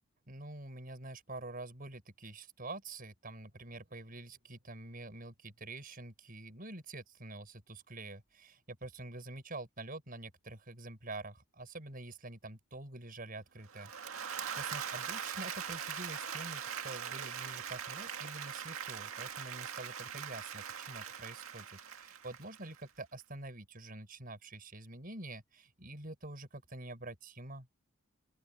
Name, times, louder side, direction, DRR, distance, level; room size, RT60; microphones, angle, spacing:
voice 1, 0.3-27.7, right 2 dB, 45° right, 5.7 m, -47 dB
Applause / Crowd, 13.7-22.8, right 8 dB, 85° right, 2.0 m, -41 dB
open air
head